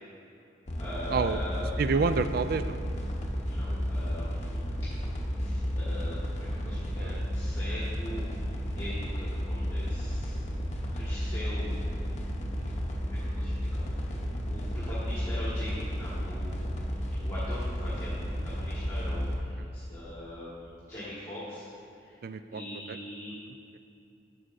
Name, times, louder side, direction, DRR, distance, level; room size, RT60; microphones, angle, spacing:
sound 1, 0.7-19.4, equal, 40° left, 0.9 m, -32 dB
voice 1, 0.8-1.7 3.4-4.6 5.4-8.3 8.8-10.3 10.9-11.7 13.1-16.6 17.2-21.7 22.0-22.2 22.5-23.4, equal, 15° left, -11 dB, 1.6 m, -42 dB
voice 2, 1.8-2.8 6.6-7.2 12.6-12.8 22.2-22.6 22.9-23.0, right 4 dB, 55° right, 11 dB, 0.3 m, -29 dB
11.0 x 7.2 x 2.6 m, 2.7 s
head